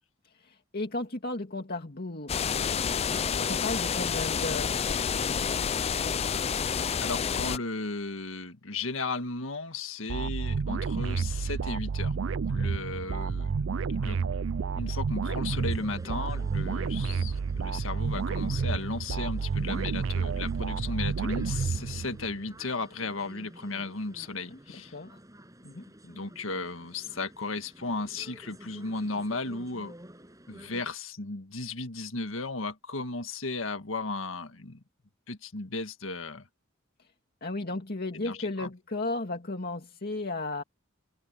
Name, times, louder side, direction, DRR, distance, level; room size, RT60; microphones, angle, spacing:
voice 1, 0.3-5.8 24.5-24.6 24.9-25.2 25.6-25.8 37.4-40.6, left 2 dB, 50° left, 2.3 m, -35 dB
sound 1, 2.3-7.6, left 7 dB, 30° left, 0.4 m, -29 dB
voice 2, 7.0-12.2 12.5-14.2 14.7-24.9 26.0-29.9 30.5-34.8 35.3-36.5 38.1-38.7, left 3 dB, 80° left, 1.8 m, -35 dB
sound 2, 10.1-22.4, right 5 dB, 70° right, 0.5 m, -30 dB
sound 3, 15.5-30.8, right 1 dB, 15° right, 7.2 m, -52 dB
head